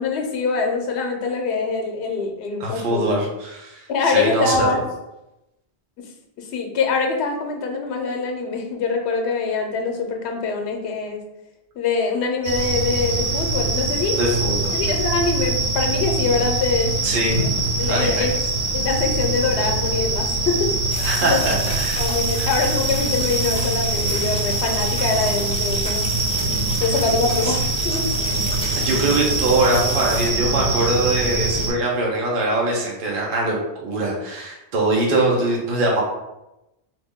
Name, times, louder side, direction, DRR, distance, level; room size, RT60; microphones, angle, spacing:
voice 1, 0.0-3.2 3.9-4.8 6.4-11.2 11.8-14.2 14.7-17.0 17.8-18.4 18.7-21.4 22.0-26.1 26.8-28.1, left 4 dB, 90° left, 4 dB, 0.9 m, -24 dB
voice 2, 2.6-4.7 14.2-14.8 17.0-17.4 17.9-18.3 21.0-22.0 22.4-22.5 27.4-27.5 28.7-33.6 33.8-36.0, right 2 dB, 55° right, -2 dB, 0.9 m, -22 dB
sound 1, 12.4-31.7, right 2 dB, 85° right, 1.2 m, -23 dB
sound 2, 20.9-30.3, equal, 10° left, 0.3 m, -33 dB
2.8 x 2.5 x 3.5 m, 0.92 s
omnidirectional pair, 1.1 m